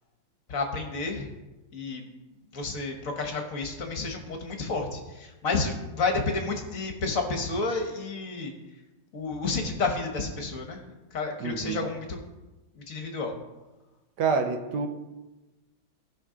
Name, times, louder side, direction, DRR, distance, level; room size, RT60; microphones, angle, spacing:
voice 1, 0.5-1.3 1.7-2.0 2.5-5.0 5.4-8.5 9.1-10.8 11.1-12.2 12.9-13.3, left 3 dB, 50° left, 4 dB, 1.3 m, -30 dB
voice 2, 11.4-11.9 14.2-14.9, right 5 dB, 65° right, 5 dB, 1.4 m, -27 dB
16.0 x 5.6 x 3.8 m, 1.1 s
omnidirectional pair, 2.2 m